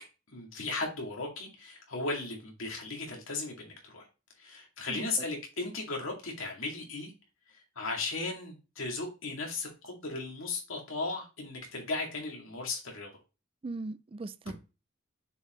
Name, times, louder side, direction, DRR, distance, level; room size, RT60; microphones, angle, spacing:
voice 1, 0.3-4.1 4.4-7.1 7.8-13.1, left 3 dB, 85° left, 2.2 m, -36 dB
voice 2, 4.9-5.3 13.6-14.5, right 3 dB, 25° right, 0.3 m, -39 dB
6.7 x 4.7 x 3.0 m
head